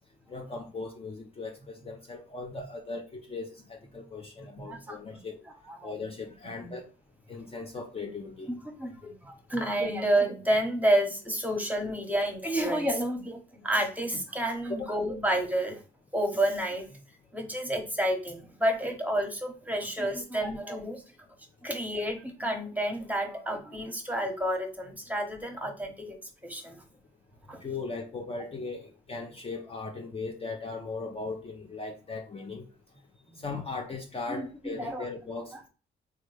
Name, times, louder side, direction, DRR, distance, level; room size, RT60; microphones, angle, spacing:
voice 1, 0.3-5.4 5.8-6.9 7.3-8.6 14.7-14.9 27.6-32.7 33.4-35.7, left 3 dB, 30° left, 0.5 m, -38 dB
voice 2, 4.6-5.0 5.8-5.9 6.6-6.7 8.5-15.8 16.1-17.0 17.3-21.0 21.6-26.2 26.4-26.8 27.5-27.6 33.3-33.4 34.3-35.0, right 1 dB, 5° right, 1.0 m, -30 dB
3.1 x 2.3 x 3.2 m
supercardioid pair, 55°, 21 cm